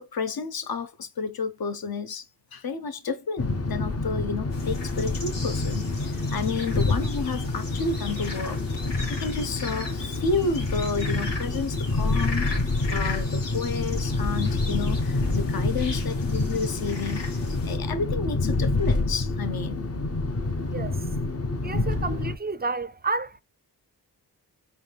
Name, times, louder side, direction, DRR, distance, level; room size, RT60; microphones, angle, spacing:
voice 1, 0.0-2.3 2.5-8.6 9.2-19.9, left 4 dB, 60° left, 0.9 m, -31 dB
sound 1, 3.4-22.4, left 2 dB, 35° left, 0.8 m, -27 dB
sound 2, 4.5-17.8, left 3 dB, 85° left, 1.7 m, -39 dB
voice 2, 20.7-21.1 21.6-23.4, right 3 dB, 25° right, 0.4 m, -30 dB
4.0 x 2.8 x 3.4 m
cardioid pair, 55°, 41 cm